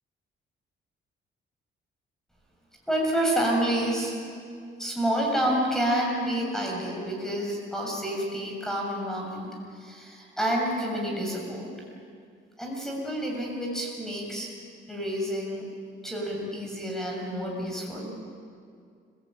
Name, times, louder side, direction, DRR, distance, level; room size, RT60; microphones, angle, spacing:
voice 1, 2.9-4.4 4.8-11.7 12.6-14.5 14.9-15.7 16.0-18.1, right 1 dB, ahead, -1 dB, 6.7 m, -29 dB
29.5 x 17.0 x 9.0 m, 2.2 s
cardioid pair, 90°, 20 cm